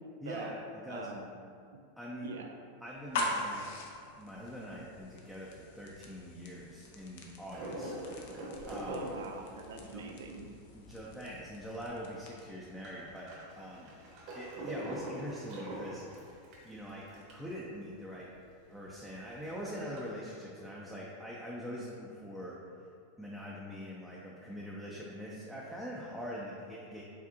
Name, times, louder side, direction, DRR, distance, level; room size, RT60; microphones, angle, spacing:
voice 1, 0.2-1.3 2.0-2.3 2.8-3.7 4.2-7.9 8.6-9.0 9.8-10.1 10.7-13.3 13.6-13.9 14.3-16.3 16.6-18.3 18.7-22.9 23.2-27.0, equal, ahead, -6 dB, 0.6 m, -43 dB
voice 2, 0.9-1.3 2.2-2.6 8.9-10.5, right 4 dB, 85° right, 3 dB, 0.4 m, -44 dB
sound 1, 2.9-12.6, left 2 dB, 70° left, 0.6 m, -43 dB
sound 2, 7.5-11.5 11.9-12.0 12.2-17.5 17.9-18.0 18.2-18.3 18.8-20.1, right 1 dB, 55° right, 1.2 m, -43 dB
4.9 x 3.4 x 2.8 m, 2.4 s
hypercardioid pair, 110°, 0 cm